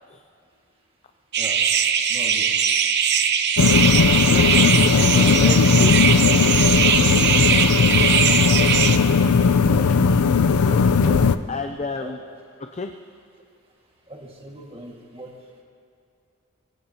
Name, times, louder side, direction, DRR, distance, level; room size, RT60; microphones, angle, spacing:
sound 1, 1.3-9.0, right 7 dB, 50° right, 0.8 m, -20 dB
voice 1, 2.1-2.7 4.7-5.4 9.2-10.6 11.0-11.4 12.0-12.2 13.4-13.5 14.1-15.5, right 1 dB, 25° right, -1 dB, 1.8 m, -41 dB
sound 2, 3.6-11.4, left 5 dB, 85° left, 0.5 m, -17 dB
voice 2, 4.3-6.1 10.5-10.9 11.5-12.2 12.7-12.9, left 3 dB, 30° left, 5 dB, 0.5 m, -30 dB
24.0 x 17.0 x 2.9 m, 2.3 s
head